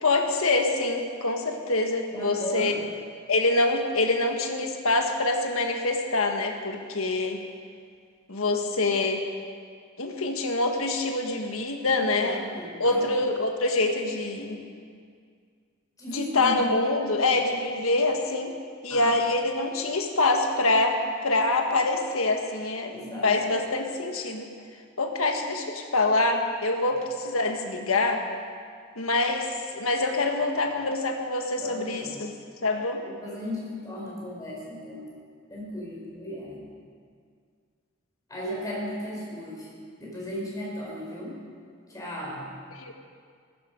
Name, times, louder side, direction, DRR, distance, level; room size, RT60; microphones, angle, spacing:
voice 1, 0.0-2.7 3.3-7.4 8.3-9.2 10.0-12.4 12.8-14.6 16.1-18.5 18.8-22.9 23.2-24.5 25.0-28.2 29.0-32.3 32.6-33.0 42.7-42.9, left 2 dB, 80° left, 4 dB, 1.6 m, -25 dB
voice 2, 2.1-2.8 11.9-13.2 16.0-16.7 18.9-19.1 22.9-23.4 31.6-32.2 33.0-35.1 35.5-36.6 38.3-39.7 40.0-41.4 41.9-42.5, equal, 15° left, -4 dB, 4.6 m, -36 dB
19.5 x 12.0 x 5.3 m, 2.1 s
head